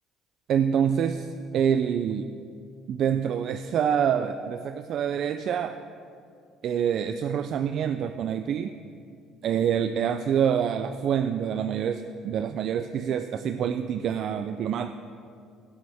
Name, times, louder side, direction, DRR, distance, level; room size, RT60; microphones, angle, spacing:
voice 1, 0.5-2.3 2.9-5.8 6.6-8.7 9.4-14.9, right 8 dB, 55° right, 9 dB, 0.3 m, -26 dB
17.0 x 7.2 x 3.5 m, 2.3 s
cardioid pair, 110°, 0 cm